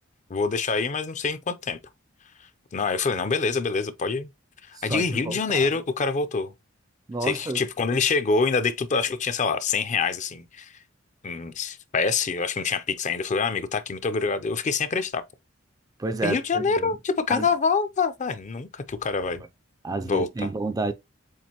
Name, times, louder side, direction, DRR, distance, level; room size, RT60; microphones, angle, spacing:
voice 1, 0.3-1.8 2.7-4.3 4.7-6.5 7.2-10.7 11.2-15.2 16.2-19.4 20.0-20.5, left 4 dB, 35° left, 0.5 m, -26 dB
voice 2, 4.9-5.7 7.1-7.6 16.0-16.9 17.3-17.5 19.8-20.9, right 3 dB, 20° right, 0.4 m, -30 dB
7.3 x 2.5 x 2.9 m
head